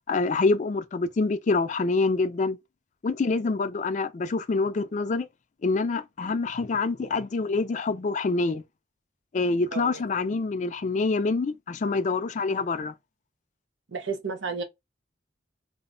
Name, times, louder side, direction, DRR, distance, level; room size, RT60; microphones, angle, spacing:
voice 1, 0.1-2.6 3.0-5.3 5.6-8.6 9.3-12.9, left 3 dB, 40° left, 0.3 m, -26 dB
voice 2, 9.7-10.0 13.9-14.6, right 4 dB, 90° right, 0.7 m, -32 dB
2.2 x 2.0 x 3.6 m
head